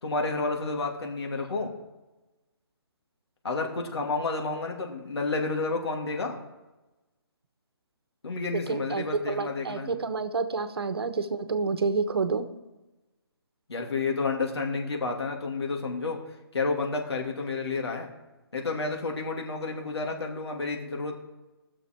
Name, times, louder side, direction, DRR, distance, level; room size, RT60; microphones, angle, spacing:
voice 1, 0.0-1.7 3.4-6.4 8.2-9.9 13.7-16.2 16.5-18.1 18.5-21.1, left 3 dB, 85° left, 1 dB, 2.7 m, -30 dB
voice 2, 8.7-12.5, right 4 dB, 75° right, 10 dB, 1.2 m, -29 dB
20.0 x 6.6 x 4.6 m, 1.1 s
hypercardioid pair, 165°, 13 cm